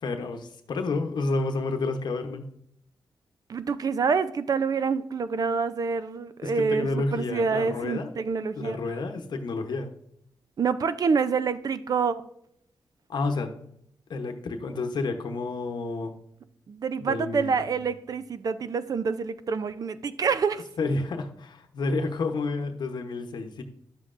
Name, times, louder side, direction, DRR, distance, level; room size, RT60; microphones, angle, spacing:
voice 1, 0.0-2.5 6.4-8.1 8.6-9.9 13.1-13.5 14.1-16.2 17.0-17.6 20.8-23.6, left 3 dB, 65° left, 0.9 m, -30 dB
voice 2, 3.5-8.8 10.6-12.2 16.7-20.6, right 5 dB, 50° right, 0.5 m, -27 dB
10.5 x 7.5 x 2.5 m
cardioid pair, 95°, 8 cm